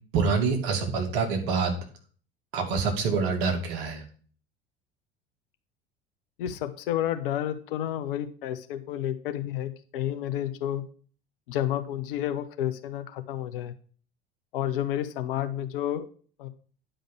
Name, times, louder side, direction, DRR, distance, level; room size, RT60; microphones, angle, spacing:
voice 1, 0.1-1.7 2.5-4.0, right 5 dB, 60° right, 2 dB, 2.5 m, -26 dB
voice 2, 6.4-10.8 11.5-13.7 14.5-16.1 16.4-16.5, left 11 dB, 60° left, 10 dB, 1.0 m, -30 dB
10.0 x 5.2 x 6.0 m, 0.42 s
figure-of-eight pair, 70°, 30 cm